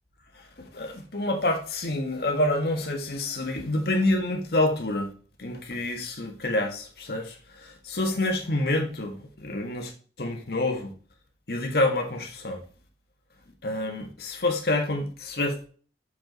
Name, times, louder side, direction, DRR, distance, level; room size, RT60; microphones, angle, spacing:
voice 1, 0.3-5.1 5.4-9.9 10.2-10.9 11.5-12.6 13.6-15.6, left 2 dB, 60° left, 1.5 m, -27 dB
6.9 x 5.4 x 3.9 m
head